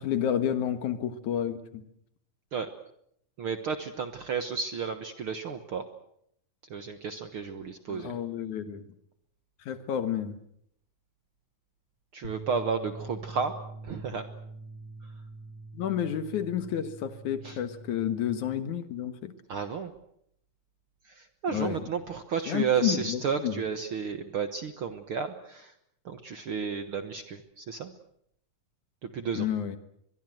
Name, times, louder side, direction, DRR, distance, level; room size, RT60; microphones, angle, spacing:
voice 1, 0.0-1.8 7.9-8.8 9.7-10.4 15.7-19.3 21.5-21.8 22.5-23.5 29.4-29.8, left 10 dB, 65° left, 11 dB, 2.7 m, -30 dB
voice 2, 3.4-5.8 6.7-8.1 12.1-13.5 13.8-14.2 17.4-17.6 19.5-19.9 21.1-25.7 26.0-27.9 29.0-29.5, right 6 dB, 55° right, 9 dB, 1.6 m, -32 dB
sound 1, 12.2-18.5, right 2 dB, 35° left, 2.1 m, -44 dB
23.5 x 22.5 x 7.8 m, 0.72 s
omnidirectional pair, 3.8 m